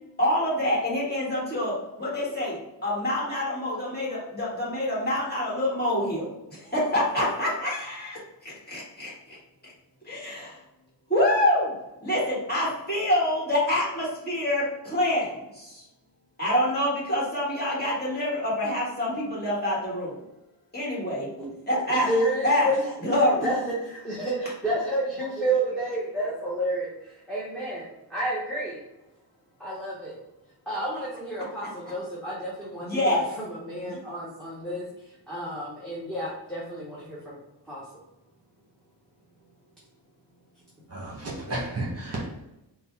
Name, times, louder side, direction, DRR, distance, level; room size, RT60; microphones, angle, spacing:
voice 1, 0.2-9.4 10.1-10.6 11.1-11.7 12.0-15.8 16.4-20.2 20.7-21.3 21.7-22.1 22.4-22.7 23.0-23.5 32.8-33.2, left 1 dB, 20° left, -7 dB, 1.5 m, -26 dB
voice 2, 21.9-22.9 23.4-28.8 29.6-30.2 30.7-37.4 37.7-37.8, right 1 dB, ahead, -8 dB, 0.7 m, -30 dB
voice 3, 40.9-42.3, right 2 dB, 35° right, -4 dB, 1.1 m, -32 dB
3.9 x 2.2 x 4.4 m, 0.94 s
wide cardioid pair, 170°, 43 cm